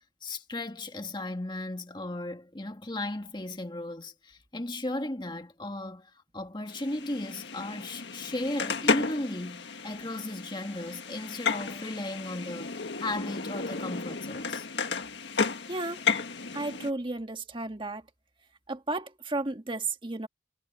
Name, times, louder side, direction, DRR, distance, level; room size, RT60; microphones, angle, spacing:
voice 1, 0.2-14.7, left 1 dB, 25° left, 1.7 m, -36 dB
sound 1, 6.7-16.9, left 5 dB, 85° left, 1.6 m, -33 dB
voice 2, 15.7-16.0 16.5-18.0 18.7-20.3, right 2 dB, 30° right, 1.6 m, -33 dB
head